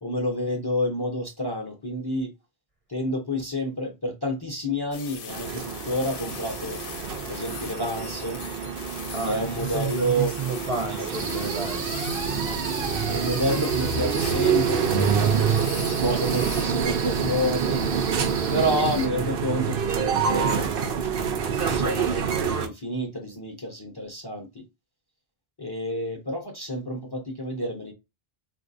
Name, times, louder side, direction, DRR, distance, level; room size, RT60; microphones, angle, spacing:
voice 1, 0.0-2.3 2.9-6.8 7.3-8.4 9.2-10.3 10.7-11.2 12.5-12.7 13.1-15.3 15.8-17.8 18.5-20.7 21.6-24.6 25.6-27.9, equal, 30° left, 0.5 m, -29 dB
sound 1, 4.9-16.7, left 8 dB, 65° left, 0.7 m, -40 dB
sound 2, 5.3-22.7, right 7 dB, 65° right, 0.8 m, -27 dB
voice 2, 9.1-12.0, right 4 dB, 40° right, 0.6 m, -31 dB
sound 3, 11.1-19.1, right 3 dB, 80° right, 1.0 m, -34 dB
3.7 x 2.5 x 2.5 m
omnidirectional pair, 1.0 m